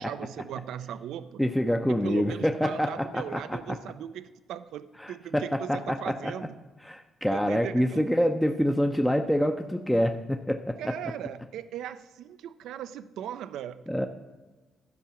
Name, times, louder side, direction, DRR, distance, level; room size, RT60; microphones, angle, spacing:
voice 1, 0.0-1.4 1.9-6.6 7.3-8.0 10.8-14.1, right 10 dB, 80° right, 13 dB, 0.4 m, -38 dB
voice 2, 1.4-3.8 5.0-6.3 6.8-11.0 13.9-14.1, equal, 5° left, 5 dB, 0.6 m, -26 dB
12.0 x 4.8 x 6.9 m, 1.3 s
cardioid pair, 90°, 0 cm